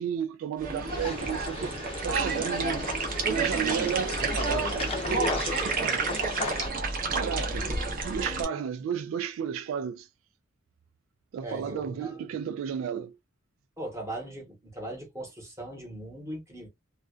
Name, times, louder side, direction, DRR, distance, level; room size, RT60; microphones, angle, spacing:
voice 1, 0.0-2.9 3.3-6.2 7.1-10.1 11.3-13.2, right 7 dB, 75° right, 0.3 m, -33 dB
sound 1, 0.6-8.4, right 4 dB, 45° right, 0.7 m, -30 dB
sound 2, 0.9-6.7, left 4 dB, 30° left, 0.6 m, -36 dB
voice 2, 11.4-12.3 13.8-16.7, right 1 dB, 15° right, 1.0 m, -39 dB
2.4 x 2.2 x 2.4 m
head